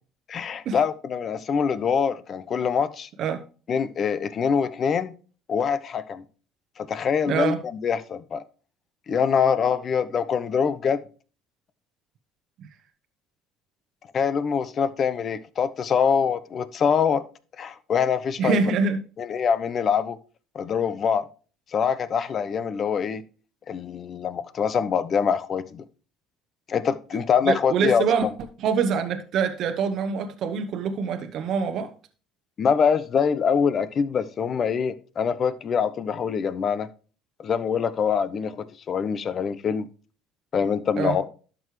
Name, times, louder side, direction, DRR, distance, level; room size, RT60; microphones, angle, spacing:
voice 1, 0.3-3.1 3.7-5.1 5.5-6.2 6.8-8.4 9.1-11.0 14.1-17.2 17.6-18.6 19.2-20.2 20.5-21.3 21.7-23.2 23.7-25.8 26.7-28.3 32.6-36.9 37.4-39.9 40.5-41.3, left 6 dB, 45° left, 0.8 m, -24 dB
voice 2, 7.3-7.6 12.6-12.7 18.4-19.0 27.5-28.3 28.6-31.9 41.0-41.2, right 6 dB, 60° right, 0.9 m, -25 dB
12.0 x 6.2 x 3.2 m
supercardioid pair, 90°, 0 cm